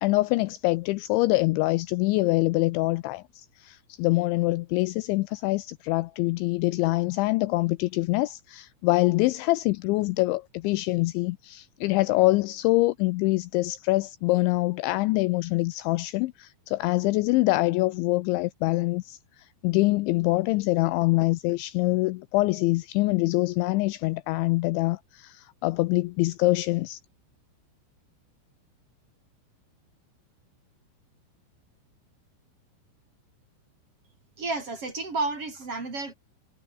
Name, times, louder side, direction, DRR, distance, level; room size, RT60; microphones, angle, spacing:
voice 1, 0.0-27.0, left 21 dB, 85° left, 2.6 m, -25 dB
voice 2, 34.4-36.1, right 3 dB, 30° right, 5.1 m, -31 dB
omnidirectional pair, 5.9 m